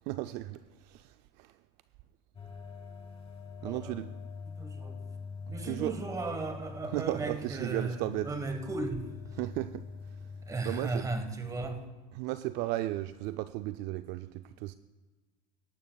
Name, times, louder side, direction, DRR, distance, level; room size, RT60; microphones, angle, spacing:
voice 1, 0.1-1.5 3.6-4.1 5.5-5.9 6.9-8.3 9.4-10.3 10.6-11.1 12.1-14.7, right 16 dB, 55° right, 0.4 m, -35 dB
sound 1, 2.3-11.9, left 5 dB, 25° left, 2.4 m, -45 dB
voice 2, 3.6-4.0 4.5-5.0 5.5-9.1 10.5-11.8, right 3 dB, 15° right, 1.3 m, -36 dB
18.0 x 12.0 x 2.3 m
supercardioid pair, 120°, 21 cm